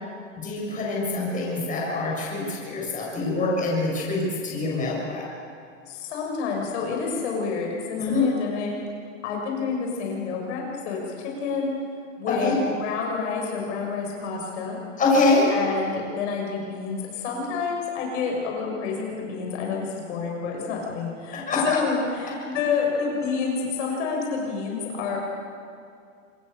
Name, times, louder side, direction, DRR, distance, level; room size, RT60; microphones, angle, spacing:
voice 1, 0.4-5.2 8.0-8.3 12.3-12.6 15.0-15.5 21.3-21.8, left 3 dB, 20° left, -3 dB, 7.0 m, -24 dB
voice 2, 5.9-8.7 9.2-11.7 12.2-12.5 12.8-14.8 15.5-25.2, left 5 dB, 60° left, 0 dB, 6.7 m, -29 dB
26.5 x 22.0 x 6.9 m, 2.3 s
supercardioid pair, 140°, 39 cm